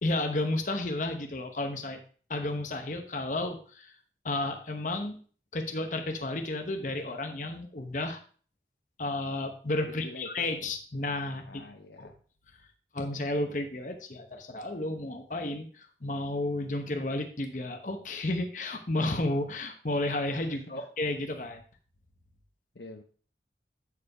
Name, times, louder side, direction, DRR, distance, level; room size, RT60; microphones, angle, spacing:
voice 1, 0.0-2.0 2.3-3.9 4.2-5.2 5.5-8.2 9.0-11.6 12.0-12.1 12.9-21.6, left 2 dB, 45° left, 5 dB, 1.0 m, -32 dB
voice 2, 9.9-10.3 11.5-12.2 20.5-20.8 22.7-23.0, left 1 dB, 75° left, 6 dB, 0.9 m, -45 dB
8.4 x 4.7 x 4.8 m, 0.42 s
head